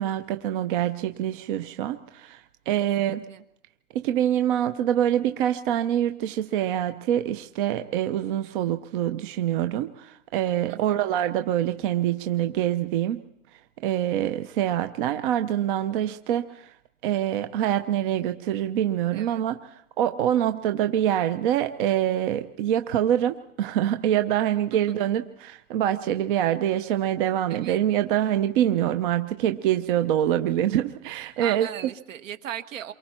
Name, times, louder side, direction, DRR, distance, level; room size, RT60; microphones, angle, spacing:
voice 1, 0.0-3.3 3.9-13.2 13.8-16.7 17.0-31.7, right 11 dB, 40° right, 8 dB, 0.8 m, -25 dB
voice 2, 2.8-3.4 10.7-11.0 19.1-19.5 24.7-24.8 27.5-27.8 31.4-32.9, right 10 dB, 65° right, 9 dB, 1.5 m, -38 dB
28.0 x 24.0 x 4.4 m, 0.74 s
hypercardioid pair, 145°, 42 cm